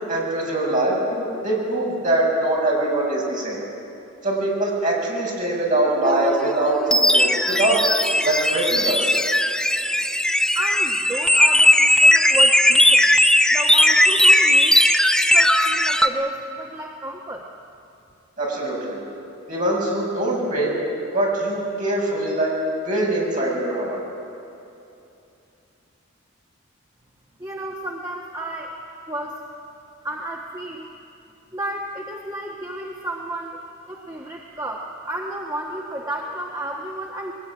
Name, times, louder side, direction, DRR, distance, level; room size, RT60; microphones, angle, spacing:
voice 1, 0.1-3.6 4.2-7.8 8.2-9.1 18.4-19.0 19.5-20.7 21.1-22.5 22.9-24.0, right 1 dB, 40° right, -3 dB, 7.1 m, -23 dB
sound 1, 6.0-16.1, left 1 dB, 5° left, 0.8 m, -17 dB
voice 2, 10.5-13.1 13.5-14.8 15.3-17.5 27.4-28.8 29.1-29.4 30.0-30.9 31.5-37.3, right 1 dB, 15° right, -1 dB, 1.4 m, -32 dB
22.0 x 19.5 x 9.8 m, 2.7 s
head